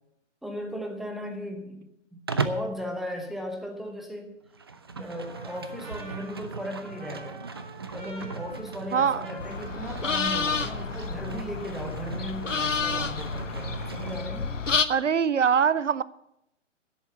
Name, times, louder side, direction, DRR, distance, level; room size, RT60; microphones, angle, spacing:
voice 1, 0.4-4.3 4.9-7.4 7.9-14.5, equal, ahead, 4 dB, 0.8 m, -37 dB
Livestock farm animals working animals, 2.3-2.7 4.4-14.3, right 4 dB, 20° right, 0.3 m, -37 dB
Trumpet, 5.0-11.6, right 2 dB, 45° right, 3.7 m, -48 dB
voice 2, 8.9-9.3 14.9-16.0, right 7 dB, 75° right, 19 dB, 0.7 m, -23 dB
sound 1, 9.4-14.8, left 5 dB, 80° left, 0.9 m, -30 dB
10.5 x 8.0 x 8.5 m, 0.83 s
figure-of-eight pair, 125°, 37 cm